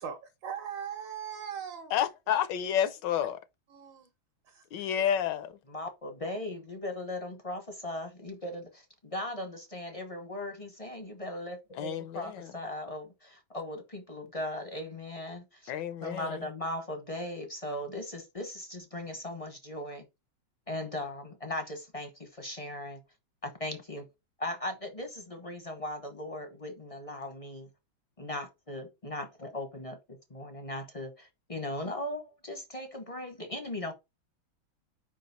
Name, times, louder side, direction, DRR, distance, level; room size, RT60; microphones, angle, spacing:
voice 1, 0.0-1.9 3.7-4.1 4.5-4.6, right 8 dB, 70° right, 1.9 m, -39 dB
voice 2, 1.9-3.4 4.7-5.5 11.8-12.5 15.7-16.4, left 9 dB, 75° left, 1.2 m, -30 dB
voice 3, 5.7-15.7 16.0-20.0 20.7-23.0 23.4-24.1 24.4-27.7 28.2-33.9, left 1 dB, 30° left, 0.6 m, -38 dB
5.1 x 4.9 x 3.9 m
omnidirectional pair, 2.1 m